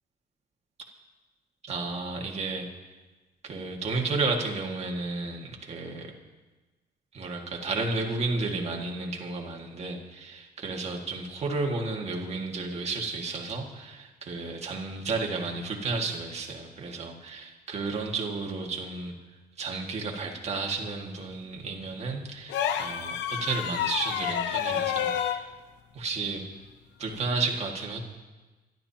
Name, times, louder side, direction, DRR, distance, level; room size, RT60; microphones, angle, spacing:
voice 1, 1.7-2.7 3.4-6.1 7.1-19.1 19.6-25.5 25.9-26.4 27.0-28.0, right 3 dB, 35° right, 1 dB, 2.0 m, -32 dB
sound 1, 22.5-25.5 27.1-27.3, left 9 dB, 85° left, 0.7 m, -29 dB
26.5 x 12.0 x 2.9 m, 1.2 s
cardioid pair, 145°, 18 cm